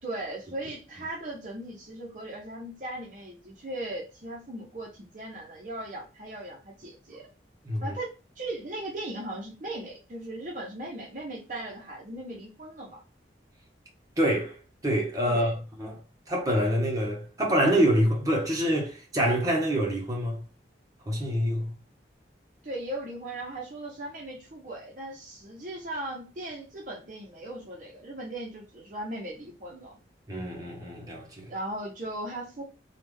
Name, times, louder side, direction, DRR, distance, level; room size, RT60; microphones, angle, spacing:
voice 1, 0.0-7.3 7.8-13.0 15.2-15.5 22.6-30.0 31.5-32.6, right 1 dB, 45° right, 0.8 m, -38 dB
voice 2, 14.2-14.5 14.8-15.5 15.8-16.0 16.3-20.4 21.1-21.7 30.3-31.5, equal, 20° right, 1.1 m, -26 dB
3.3 x 2.4 x 3.4 m
head